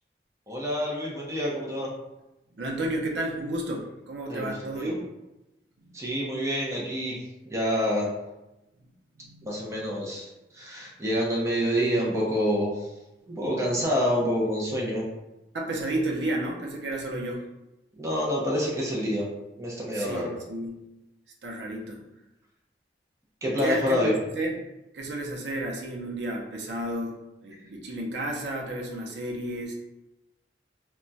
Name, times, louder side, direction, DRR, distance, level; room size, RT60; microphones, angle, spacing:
voice 1, 0.5-1.9 4.3-4.9 5.9-7.1 7.5-8.1 9.4-12.7 13.3-15.0 18.0-19.2 19.6-20.3 23.4-24.1, equal, 15° right, -4 dB, 0.5 m, -27 dB
voice 2, 2.5-5.0 5.8-6.0 9.2-9.9 15.5-17.4 19.9-20.8 21.4-22.0 23.6-24.5 24.9-29.7, right 1 dB, 80° right, -1 dB, 0.6 m, -32 dB
2.2 x 2.2 x 3.8 m, 0.97 s
head